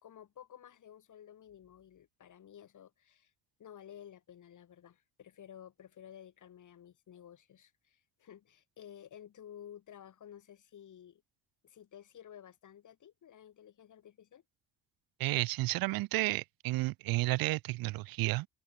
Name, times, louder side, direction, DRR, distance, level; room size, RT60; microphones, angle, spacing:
voice 1, 0.0-3.3 3.6-11.2 11.6-14.4, left 9 dB, 60° left, 3.4 m, -53 dB
voice 2, 15.2-18.5, right 20 dB, 85° right, 0.6 m, -32 dB
cardioid pair, 90°, 34 cm